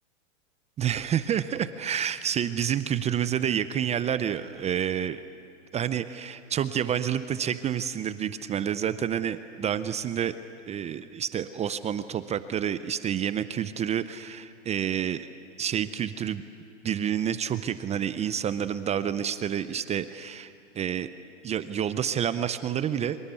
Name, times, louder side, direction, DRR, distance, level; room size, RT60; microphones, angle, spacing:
voice 1, 0.8-5.2 5.7-10.3 10.7-15.3 15.6-16.4 16.8-21.1 21.4-23.2, right 9 dB, 15° right, 13 dB, 0.6 m, -29 dB
25.0 x 22.5 x 8.3 m, 2.3 s
hypercardioid pair, 120°, 38 cm